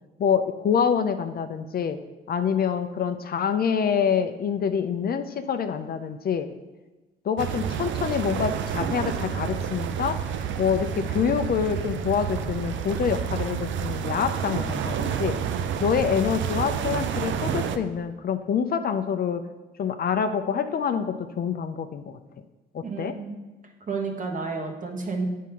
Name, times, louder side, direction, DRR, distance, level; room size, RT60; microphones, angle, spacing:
voice 1, 0.2-2.0 2.3-6.5 7.2-10.2 10.6-15.4 15.8-19.4 19.8-22.2 22.7-23.1, left 7 dB, 50° left, 8 dB, 0.6 m, -26 dB
sound 1, 7.4-17.8, right 8 dB, 70° right, 0.6 m, -29 dB
voice 2, 22.8-23.4 23.9-25.2, right 4 dB, 40° right, 2 dB, 1.4 m, -31 dB
9.1 x 3.7 x 5.7 m, 1.2 s
cardioid pair, 90°, 20 cm